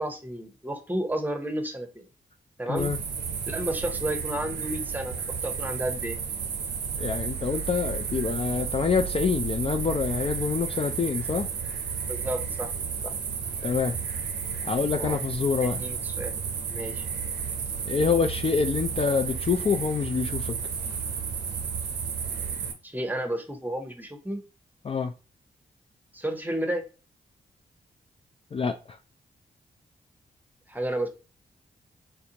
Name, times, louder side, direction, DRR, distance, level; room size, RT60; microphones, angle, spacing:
voice 1, 0.0-2.1 2.6-2.9 3.5-5.2 5.4-6.2 12.1-12.7 13.0-13.1 14.9-15.2 15.6-16.3 16.7-17.1 22.8-24.4 26.1-26.8 30.7-31.1, right 1 dB, 10° right, 0.8 m, -31 dB
sound 1, 2.8-22.7, right 6 dB, 80° right, 0.6 m, -32 dB
voice 2, 7.0-11.5 13.6-14.0 14.6-15.8 17.8-20.6 24.8-25.1 28.5-29.0, left 5 dB, 35° left, 0.3 m, -26 dB
3.4 x 2.4 x 2.8 m
supercardioid pair, 45°, 17 cm